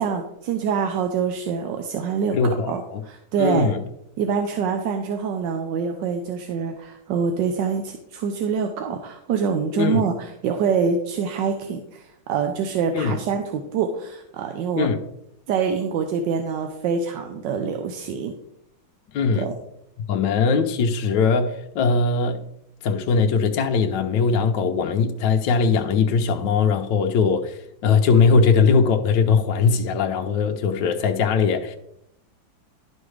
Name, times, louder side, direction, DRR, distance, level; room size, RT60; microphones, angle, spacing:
voice 1, 0.0-2.4 2.7-3.7 4.2-14.9 15.5-18.3 19.3-19.5, right 6 dB, 70° right, 1.3 m, -25 dB
voice 2, 2.3-3.0 3.4-3.8 9.7-10.0 12.9-13.2 14.7-15.0 19.1-19.5 20.1-22.4 22.8-31.8, left 5 dB, 70° left, 1.2 m, -20 dB
11.5 x 5.4 x 3.2 m
omnidirectional pair, 2.2 m